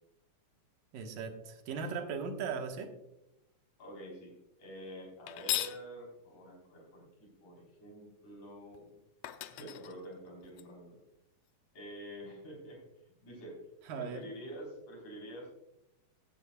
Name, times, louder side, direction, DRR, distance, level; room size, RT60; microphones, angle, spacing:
voice 1, 0.9-2.9 13.9-14.2, right 5 dB, 85° right, 3 dB, 3.0 m, -38 dB
voice 2, 3.8-4.3 4.6-9.0 9.5-11.0 11.7-13.6 13.9-15.5, equal, 60° left, -1 dB, 5.3 m, -48 dB
sound 1, 5.3-5.8 8.7-8.8 9.2-10.6, left 13 dB, 80° left, 1.6 m, -37 dB
15.5 x 10.5 x 2.3 m, 0.85 s
omnidirectional pair, 3.8 m